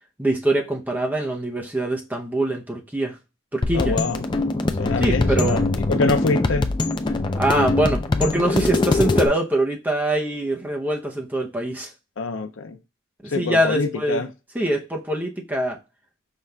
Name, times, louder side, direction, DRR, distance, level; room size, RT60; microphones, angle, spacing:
voice 1, 0.2-3.2 3.5-4.0 5.0-5.7 7.4-11.9 13.2-14.2 14.5-15.8, right 1 dB, 10° right, 0.7 m, -23 dB
sound 1, 3.6-9.3, left 2 dB, 20° left, 0.3 m, -22 dB
voice 2, 3.7-4.2 4.8-6.7 12.2-12.8 13.3-14.3, left 4 dB, 70° left, 0.6 m, -25 dB
5.6 x 2.4 x 3.3 m
head